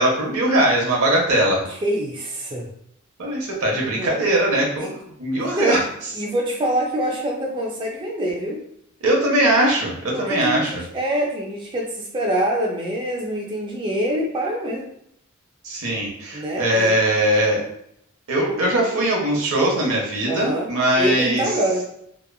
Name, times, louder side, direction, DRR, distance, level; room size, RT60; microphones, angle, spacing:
voice 1, 0.0-1.6 3.2-4.9 5.2-5.8 9.0-10.8 15.6-17.6 18.3-21.4, right 1 dB, 80° right, -1 dB, 0.8 m, -20 dB
voice 2, 1.7-2.7 3.7-4.2 4.8-4.9 5.4-5.8 6.1-8.6 10.1-14.9 16.3-17.0 18.5-18.7 20.3-20.7 21.0-21.8, right 1 dB, 25° right, -1 dB, 0.4 m, -25 dB
2.8 x 2.4 x 2.2 m, 0.72 s
head